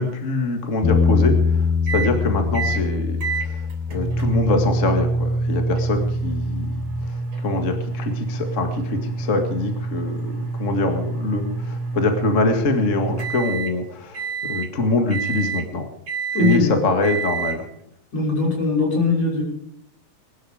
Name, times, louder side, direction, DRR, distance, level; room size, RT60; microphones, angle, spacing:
voice 1, 0.0-1.4 1.9-6.7 7.4-15.9 16.4-17.6, left 2 dB, 30° left, 5 dB, 1.5 m, -24 dB
Bass guitar, 0.8-7.1, left 5 dB, 80° left, 6.9 m, -24 dB
sound 1, 1.9-2.1 2.5-2.8 3.2-13.7 14.1-14.7 15.1-15.7 16.1-16.6 17.0-17.6, right 3 dB, 45° right, 4.4 m, -27 dB
voice 2, 16.3-16.7 18.1-19.4, left 3 dB, 45° left, -2 dB, 6.8 m, -20 dB
21.0 x 12.5 x 5.0 m, 0.71 s
omnidirectional pair, 4.1 m